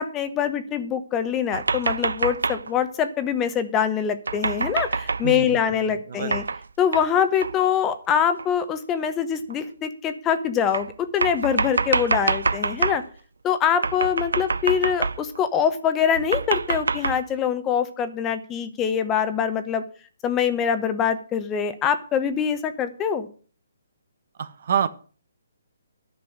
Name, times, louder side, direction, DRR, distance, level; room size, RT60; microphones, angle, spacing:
voice 1, 0.0-6.4 6.8-13.0 13.4-19.8 20.2-23.3, left 8 dB, 15° left, 10 dB, 1.0 m, -24 dB
sound 1, 1.5-2.7 4.3-5.3 6.3-6.6 6.9-7.1 7.4-7.5 8.4-8.5 9.5-9.6 10.7-13.0 13.8-15.4 16.1-17.2, right 4 dB, 85° right, 0.5 m, -26 dB
voice 2, 5.2-6.3 24.4-24.9, right 8 dB, 55° right, 13 dB, 1.2 m, -27 dB
10.5 x 6.1 x 8.9 m, 0.40 s
hypercardioid pair, 155°, 0 cm